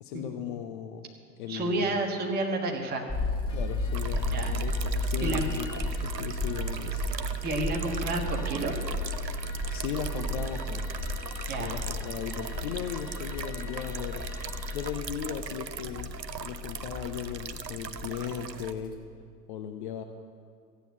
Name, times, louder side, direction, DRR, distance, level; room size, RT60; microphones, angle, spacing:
voice 1, 0.0-1.0 1.4-2.0 3.5-7.1 9.7-11.1 11.6-14.2 14.7-16.1 16.4-18.9 19.5-20.0, left 9 dB, 30° left, 6 dB, 0.7 m, -37 dB
voice 2, 1.5-3.1 4.3-4.5 5.2-5.4 7.4-8.7 11.5-11.8, right 2 dB, 20° right, 2 dB, 1.6 m, -30 dB
sound 1, 3.1-19.0, left 1 dB, 10° left, 1.5 m, -34 dB
sound 2, 3.5-14.9, left 6 dB, 75° left, 2.2 m, -47 dB
sound 3, 3.9-18.7, right 7 dB, 80° right, 0.8 m, -40 dB
14.5 x 9.2 x 7.9 m, 2.2 s
figure-of-eight pair, 105°, 50 cm